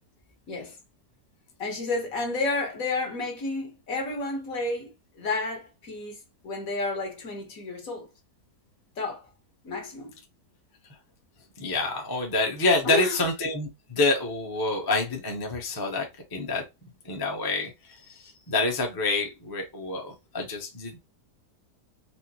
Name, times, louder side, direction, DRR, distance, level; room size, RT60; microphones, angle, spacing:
voice 1, 1.6-6.2 6.4-8.1 9.0-9.3 9.6-10.1 12.8-13.2, left 3 dB, 60° left, 1.6 m, -31 dB
voice 2, 11.6-16.6 17.0-21.0, left 2 dB, 25° left, 0.5 m, -27 dB
4.3 x 2.0 x 2.8 m
omnidirectional pair, 1.8 m